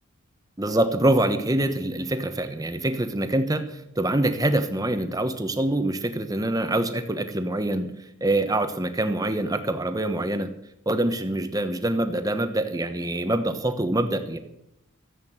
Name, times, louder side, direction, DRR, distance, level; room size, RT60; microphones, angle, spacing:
voice 1, 0.6-7.9 8.2-10.5 10.9-14.4, right 1 dB, 15° right, 8 dB, 1.0 m, -25 dB
14.5 x 8.2 x 8.0 m, 0.84 s
head